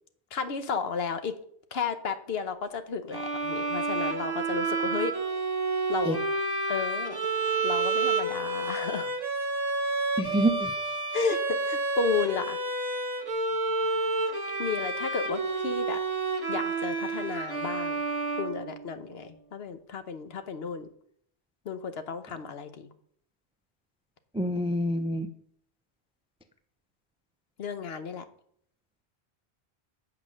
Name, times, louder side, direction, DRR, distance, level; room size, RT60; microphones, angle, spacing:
voice 1, 0.3-1.3 1.7-5.1 5.9-6.2 6.7-7.2 7.6-9.1 11.1-12.6 14.6-16.0 16.5-18.0 18.4-20.9 21.6-22.9 27.6-28.2, left 5 dB, 70° left, 10 dB, 1.0 m, -33 dB
Bowed string instrument, 3.1-19.2, right 3 dB, 40° right, 1.1 m, -30 dB
voice 2, 10.2-10.7 24.3-25.3, right 1 dB, 10° right, 10 dB, 0.3 m, -26 dB
8.3 x 5.2 x 6.3 m, 0.64 s
omnidirectional pair, 1.1 m